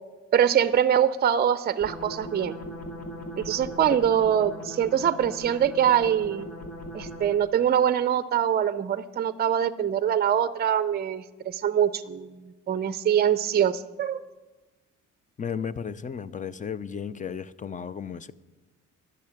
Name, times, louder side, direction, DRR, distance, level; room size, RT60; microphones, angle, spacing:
voice 1, 0.3-2.6 3.4-6.5 6.9-12.4 12.7-14.2, right 9 dB, 35° right, 0.5 m, -24 dB
sound 1, 1.8-7.6, equal, 55° left, 2.3 m, -39 dB
voice 2, 15.4-18.3, left 7 dB, 25° left, 0.5 m, -34 dB
12.0 x 6.7 x 9.1 m
cardioid pair, 90°, 30 cm